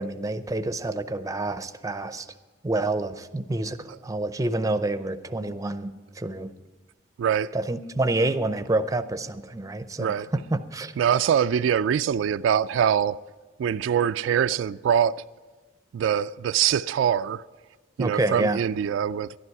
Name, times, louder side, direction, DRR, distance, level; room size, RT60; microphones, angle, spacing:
voice 1, 0.0-2.3 2.6-6.5 7.5-10.9 18.0-18.6, right 2 dB, 20° right, 0.5 m, -28 dB
voice 2, 7.2-7.5 10.0-10.3 11.0-13.2 13.6-15.2 15.9-17.4 18.0-19.4, right 8 dB, 85° right, 0.3 m, -23 dB
12.5 x 11.5 x 4.7 m
head